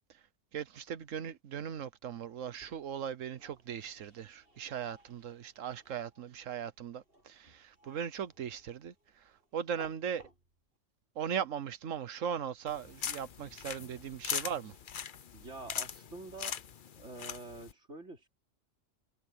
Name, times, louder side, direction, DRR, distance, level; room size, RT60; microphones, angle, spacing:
voice 1, 0.5-10.3 11.1-14.8, right 8 dB, 80° right, 1.3 m, -39 dB
sound 1, 2.3-10.8, equal, 45° right, 8.3 m, -61 dB
sound 2, 12.7-17.7, left 8 dB, 50° left, 0.8 m, -41 dB
voice 2, 15.3-16.6 17.0-18.3, right 3 dB, 65° right, 3.9 m, -47 dB
omnidirectional pair, 1.3 m